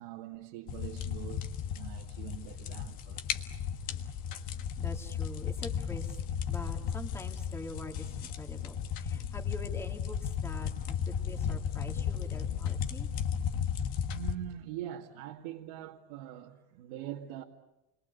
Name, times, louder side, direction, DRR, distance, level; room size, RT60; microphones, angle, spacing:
voice 1, 0.0-3.4 12.0-12.1 13.5-13.6 14.1-17.4, right 12 dB, 65° right, 2.1 m, -43 dB
sound 1, 0.7-14.3, left 8 dB, 40° left, 1.6 m, -35 dB
voice 2, 4.8-6.1 6.5-13.1, left 2 dB, 10° left, 2.9 m, -45 dB
30.0 x 22.0 x 8.3 m
supercardioid pair, 165°, 21 cm